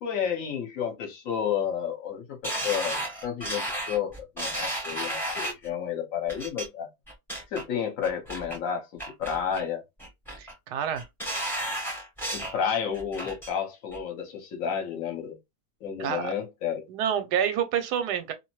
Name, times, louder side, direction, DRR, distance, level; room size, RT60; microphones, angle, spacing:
voice 1, 0.0-6.9 7.5-9.8 12.3-15.4 15.8-16.9, left 8 dB, 60° left, 1.1 m, -31 dB
sound 1, 2.4-5.7 6.3-6.7 7.1-7.6 8.0-8.6 9.0-9.7 10.0-10.5 11.0-12.6 12.9-13.5 13.9-14.0, right 1 dB, ahead, 0.7 m, -33 dB
voice 2, 10.4-11.0 16.0-16.3 16.9-18.3, right 8 dB, 80° right, 1.2 m, -28 dB
2.8 x 2.0 x 3.0 m
omnidirectional pair, 1.8 m